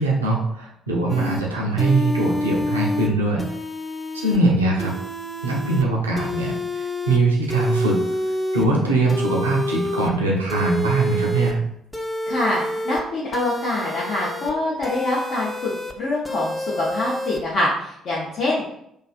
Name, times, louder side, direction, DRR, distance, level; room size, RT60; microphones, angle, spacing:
voice 1, 0.0-3.5 4.1-4.9 5.4-8.0 8.5-11.6, right 2 dB, 85° right, -2 dB, 0.4 m, -21 dB
sound 1, 1.1-1.4 1.8-3.1 3.4-4.4 4.8-5.8 6.2-7.2 7.5-8.7 9.1-10.1 10.5-11.5 11.9-13.0 13.3-14.5 14.8-15.9 16.2-17.4, left 1 dB, 10° left, 0.4 m, -28 dB
voice 2, 12.3-18.6, left 2 dB, 55° left, -6 dB, 0.6 m, -25 dB
2.5 x 2.3 x 2.5 m, 0.74 s
figure-of-eight pair, 45°, 0 cm